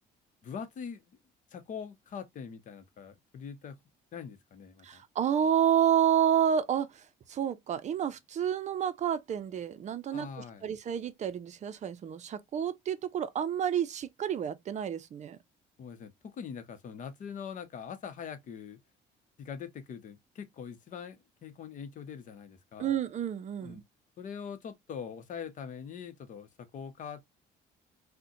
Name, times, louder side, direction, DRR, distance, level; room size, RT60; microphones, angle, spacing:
voice 1, 0.4-1.2 1.5-3.8 4.1-5.0 10.1-10.7 15.8-18.8 19.4-22.9 23.6-23.8 24.2-27.2, left 7 dB, 50° left, 0.8 m, -43 dB
voice 2, 4.8-15.4 22.8-23.8, right 9 dB, 45° right, 0.5 m, -30 dB
3.8 x 2.2 x 2.7 m
cardioid pair, 110°, 17 cm